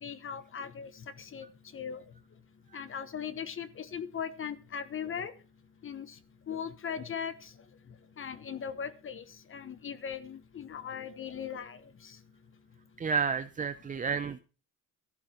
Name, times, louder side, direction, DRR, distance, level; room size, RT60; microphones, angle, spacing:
voice 1, 0.0-1.5 1.7-2.0 2.7-5.3 5.8-6.2 6.5-7.5 8.2-9.2 9.5-12.2, left 7 dB, 40° left, 14 dB, 1.2 m, -39 dB
voice 2, 13.0-14.4, right 6 dB, 25° right, 11 dB, 0.6 m, -30 dB
14.5 x 12.0 x 4.4 m, 0.35 s
cardioid pair, 130°, 33 cm